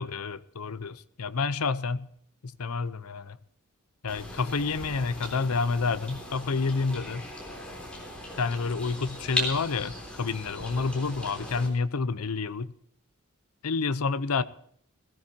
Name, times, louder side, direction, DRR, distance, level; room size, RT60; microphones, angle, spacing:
voice 1, 0.0-2.1 2.6-3.4 4.0-7.2 8.4-12.7 13.6-14.4, left 4 dB, 85° left, 0.7 m, -29 dB
sound 1, 4.1-11.7, left 1 dB, 5° left, 3.5 m, -38 dB
20.5 x 15.5 x 2.8 m
head